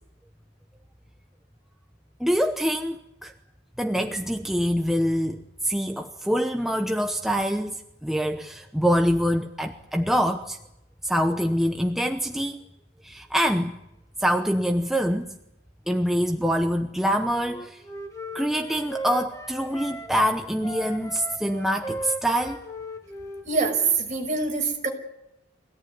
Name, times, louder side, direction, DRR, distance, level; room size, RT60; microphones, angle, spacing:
voice 1, 2.2-3.3 3.8-10.6 11.0-12.6 13.0-13.8 14.2-15.3 15.9-17.8 18.3-22.6, equal, ahead, 4 dB, 0.9 m, -25 dB
Wind instrument woodwind instrument, 17.4-20.3 20.6-24.0, right 1 dB, 15° left, 2.1 m, -37 dB
voice 2, 23.4-24.9, right 4 dB, 40° right, 2 dB, 5.9 m, -24 dB
24.5 x 17.5 x 9.5 m, 0.88 s
head